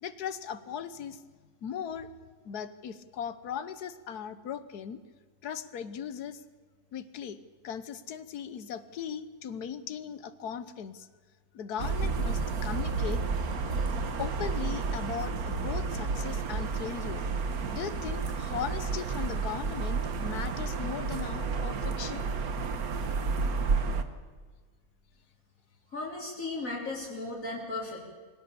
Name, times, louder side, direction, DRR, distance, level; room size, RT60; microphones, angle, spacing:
voice 1, 0.0-1.2 1.6-2.1 2.4-5.0 5.4-6.4 6.9-7.4 7.6-11.1 11.5-13.2 14.2-17.2 17.7-22.3, left 8 dB, 85° left, 13 dB, 1.5 m, -38 dB
sound 1, 11.8-24.0, right 4 dB, 70° right, 1.7 m, -31 dB
voice 2, 25.9-28.0, left 2 dB, 60° left, -4 dB, 4.3 m, -36 dB
24.5 x 17.5 x 6.9 m, 1.5 s
omnidirectional pair, 1.6 m